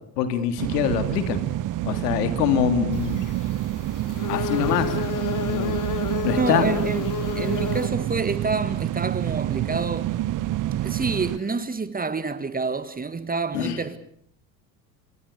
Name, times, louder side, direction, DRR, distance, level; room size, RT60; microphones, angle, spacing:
voice 1, 0.2-1.4 1.8-3.2 4.3-5.0 5.4-5.8 6.2-6.6 13.5-13.8, left 9 dB, 70° left, 3.1 m, -24 dB
sound 1, 0.6-11.4, right 14 dB, 40° right, 1.0 m, -28 dB
sound 2, 2.9-7.9, left 8 dB, 40° left, 2.9 m, -31 dB
voice 2, 6.3-7.0 7.4-10.1 10.8-14.0, right 4 dB, 15° right, 1.8 m, -27 dB
26.0 x 24.5 x 6.7 m
hypercardioid pair, 70°, 49 cm